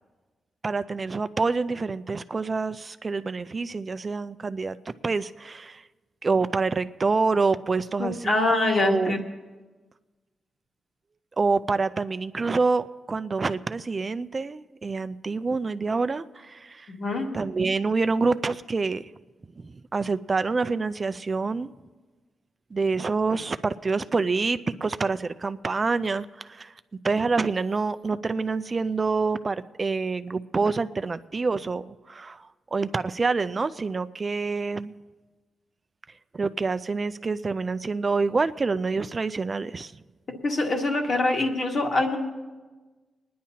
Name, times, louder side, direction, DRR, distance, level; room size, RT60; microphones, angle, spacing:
voice 1, 0.6-4.8 5.0-5.8 6.2-9.1 11.4-16.9 17.3-19.1 19.6-21.7 22.7-26.7 27.0-34.9 36.3-39.9, right 4 dB, 35° right, 13 dB, 0.4 m, -27 dB
voice 2, 8.0-9.2 16.9-17.3 40.4-42.2, left 2 dB, 55° left, 1 dB, 1.8 m, -24 dB
30.0 x 10.0 x 2.8 m, 1.3 s
cardioid pair, 90°, 0 cm